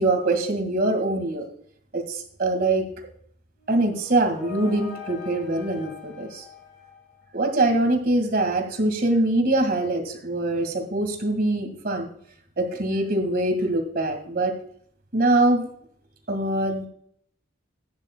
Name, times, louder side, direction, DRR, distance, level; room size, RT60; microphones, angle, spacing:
voice 1, 0.0-1.4 1.9-2.8 3.7-6.4 7.3-12.1 12.6-14.5 15.1-15.7 16.3-16.9, right 2 dB, 45° right, 6 dB, 1.9 m, -23 dB
sound 1, 3.6-7.5, left 6 dB, 40° left, 4.1 m, -42 dB
14.5 x 9.7 x 2.2 m, 0.63 s
head